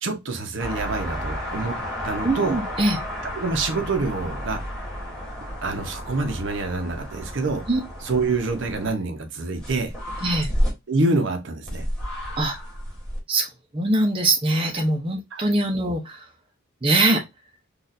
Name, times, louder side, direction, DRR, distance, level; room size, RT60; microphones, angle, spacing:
voice 1, 0.0-1.8 2.0-2.6 3.4-4.6 5.6-7.6 8.0-9.9 10.9-11.8 15.3-15.4, right 3 dB, 60° right, 0.7 m, -26 dB
sound 1, 0.6-8.9 9.5-10.7 11.7-13.2, equal, 5° left, 1.3 m, -31 dB
voice 2, 2.2-3.0 7.7-7.8 10.2-10.5 12.4-12.6 13.3-16.2 16.8-17.2, right 2 dB, 25° right, 0.6 m, -22 dB
4.1 x 2.5 x 2.5 m
head